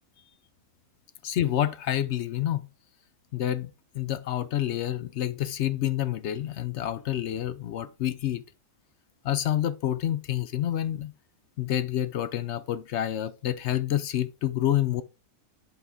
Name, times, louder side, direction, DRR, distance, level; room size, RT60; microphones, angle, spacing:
voice 1, 1.2-2.7 3.3-8.4 9.2-11.1 11.6-15.0, left 12 dB, 70° left, 0.7 m, -28 dB
8.3 x 4.7 x 3.7 m
omnidirectional pair, 1.6 m